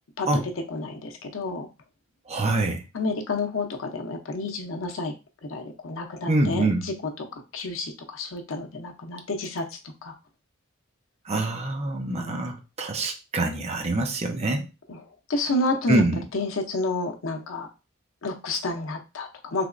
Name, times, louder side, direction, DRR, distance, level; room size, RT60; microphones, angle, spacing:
voice 1, 0.7-1.7 2.9-5.1 5.5-6.7 7.5-9.6 10.0-10.1 12.1-12.5 15.3-16.0 16.3-17.7 18.2-19.6, left 2 dB, 80° left, 4 dB, 0.7 m, -30 dB
voice 2, 2.3-2.8 6.3-6.8 11.3-14.7 15.9-16.2, right 2 dB, 30° right, 4 dB, 0.6 m, -25 dB
3.3 x 3.0 x 2.5 m, 0.29 s
head